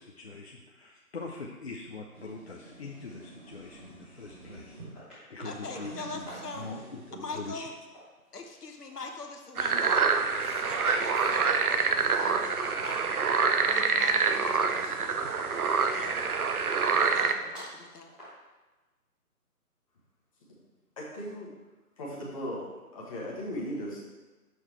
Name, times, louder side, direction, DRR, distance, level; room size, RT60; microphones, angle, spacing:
voice 1, 0.0-6.3 6.6-7.7, left 3 dB, 45° left, -1 dB, 0.6 m, -43 dB
sound 1, 1.8-4.9 5.3-7.2, right 3 dB, 30° right, 1.7 m, -48 dB
sound 2, 4.9-5.2 5.7-5.9 6.2-6.9 7.7-9.4 9.8-11.1 11.4-18.3, equal, ahead, 1.0 m, -49 dB
voice 2, 5.4-6.6 7.2-7.7 8.3-10.0 10.4-15.2 15.8-16.3 16.9-18.1, left 3 dB, 80° left, 3 dB, 1.1 m, -42 dB
sound 3, 9.6-17.3, right 5 dB, 70° right, 0.7 m, -26 dB
voice 3, 21.0-21.5 22.0-22.6 22.9-24.0, equal, 20° left, -4 dB, 1.2 m, -37 dB
6.3 x 4.7 x 4.4 m, 1.2 s
figure-of-eight pair, 150°, 46 cm